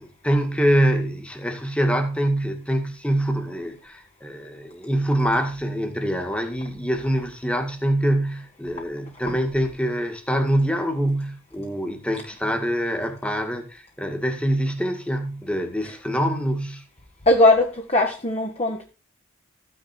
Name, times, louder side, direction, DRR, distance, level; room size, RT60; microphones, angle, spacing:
voice 1, 0.0-16.8, equal, 5° left, 1.9 m, -25 dB
voice 2, 17.3-18.9, left 2 dB, 30° left, 1.5 m, -19 dB
14.5 x 9.8 x 4.5 m
head